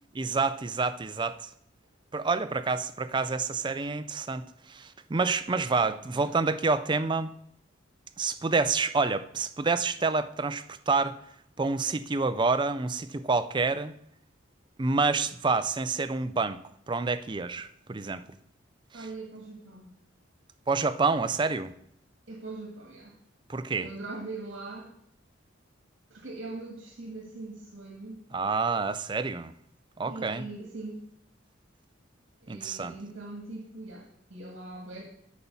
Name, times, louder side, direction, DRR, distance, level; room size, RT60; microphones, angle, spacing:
voice 1, 0.1-1.5 2.1-7.3 8.2-11.2 11.6-13.9 14.8-16.6 16.9-18.2 20.7-21.7 23.5-23.9 28.3-29.5 30.0-30.5 32.5-32.9, right 4 dB, 25° right, 0.4 m, -28 dB
voice 2, 5.9-6.4 18.9-19.9 22.3-23.2 23.8-24.9 26.1-28.2 30.0-31.1 32.4-35.0, right 2 dB, 65° right, 1.7 m, -41 dB
8.4 x 5.4 x 7.1 m
head